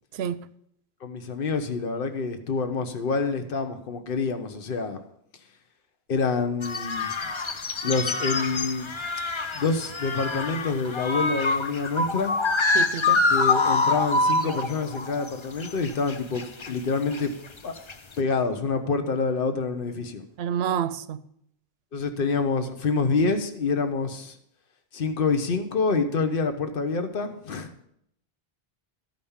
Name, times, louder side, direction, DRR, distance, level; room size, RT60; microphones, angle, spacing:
voice 1, 0.1-0.4 12.7-13.2 20.4-21.2, right 9 dB, 80° right, 0.8 m, -28 dB
voice 2, 1.0-5.0 6.1-7.1 7.8-8.9 9.5-12.3 13.3-17.3 17.6-17.7 18.2-20.2 21.9-24.4 24.9-27.7, left 4 dB, 60° left, 1.1 m, -27 dB
sound 1, 6.6-15.3 15.6-16.7 17.1-17.5 17.8-18.1, left 3 dB, 35° left, 0.6 m, -26 dB
13.5 x 5.3 x 7.1 m
omnidirectional pair, 1.0 m